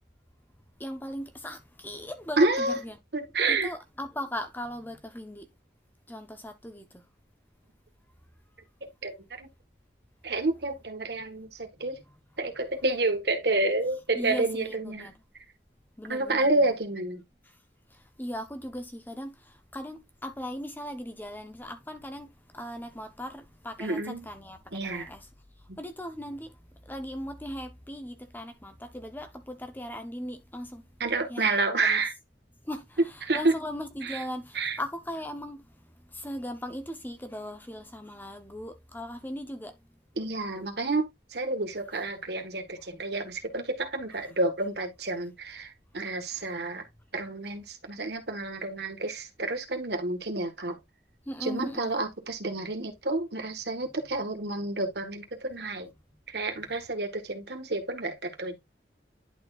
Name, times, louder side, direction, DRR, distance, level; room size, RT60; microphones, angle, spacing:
voice 1, 0.8-3.0 3.5-5.5 6.1-7.0 14.1-15.2 16.0-16.8 17.9-25.3 25.8-26.5 26.9-30.8 31.3-31.5 31.8-32.0 32.6-35.6 36.1-39.8 46.3-46.5 51.3-52.0, equal, 10° left, 1.0 m, -38 dB
voice 2, 2.4-2.8 3.1-3.7 9.0-9.5 10.2-12.0 12.4-15.1 16.1-17.2 23.8-24.3 24.7-25.1 25.7-25.8 31.0-32.1 33.2-33.5 34.0-34.2 34.5-34.8 40.2-46.9 47.1-50.8 51.4-55.9 56.3-58.6, right 2 dB, 70° right, 1.7 m, -29 dB
11.0 x 4.4 x 2.5 m
head